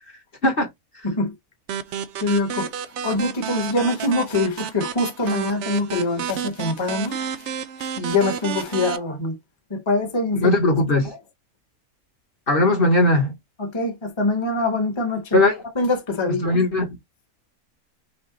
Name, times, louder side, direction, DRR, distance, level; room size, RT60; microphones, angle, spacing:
sound 1, 1.7-9.0, right 8 dB, 60° right, 0.8 m, -31 dB
voice 1, 2.2-2.7 3.0-7.2 7.8-9.3 9.7-10.5 13.6-15.4 15.7-16.5, left 2 dB, 20° left, 1.0 m, -24 dB
voice 2, 10.3-11.1 12.5-13.3 15.3-15.6 16.3-16.9, left 2 dB, 40° left, 1.3 m, -19 dB
5.9 x 2.3 x 3.8 m
omnidirectional pair, 1.6 m